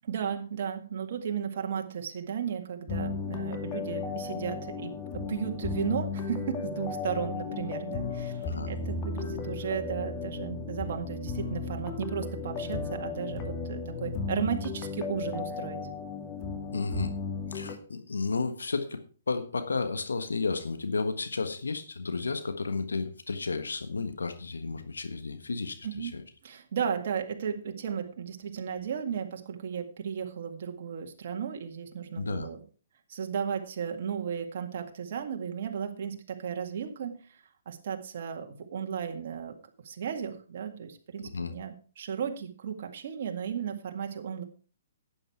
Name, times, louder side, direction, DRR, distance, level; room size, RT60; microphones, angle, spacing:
voice 1, 0.0-15.8 25.8-26.1 26.4-32.6 33.1-37.4 37.7-39.6 39.8-44.4, right 7 dB, 55° right, 4 dB, 1.9 m, -35 dB
sound 1, 2.9-17.8, left 4 dB, 30° left, 2.1 m, -35 dB
voice 2, 8.4-8.7 16.7-17.1 17.5-19.0 19.3-26.2 32.2-32.5 41.2-41.5, left 4 dB, 85° left, 9 dB, 1.4 m, -32 dB
12.0 x 9.0 x 4.6 m, 0.38 s
hypercardioid pair, 135°, 0 cm